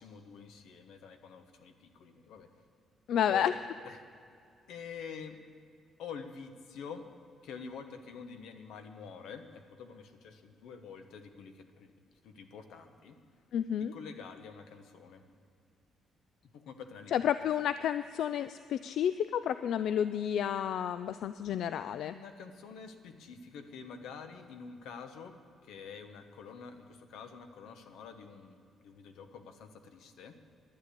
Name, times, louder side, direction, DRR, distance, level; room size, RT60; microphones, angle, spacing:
voice 1, 0.0-2.5 3.3-4.0 4.7-5.4 6.0-7.1 7.4-13.2 13.8-15.2 16.4-17.6 22.0-25.3 25.6-30.4, left 6 dB, 90° left, 7 dB, 1.1 m, -47 dB
voice 2, 3.1-3.5 13.5-13.9 17.1-22.1, left 9 dB, 65° left, 13 dB, 0.3 m, -31 dB
12.0 x 9.9 x 8.4 m, 2.4 s
cardioid pair, 150°, 0 cm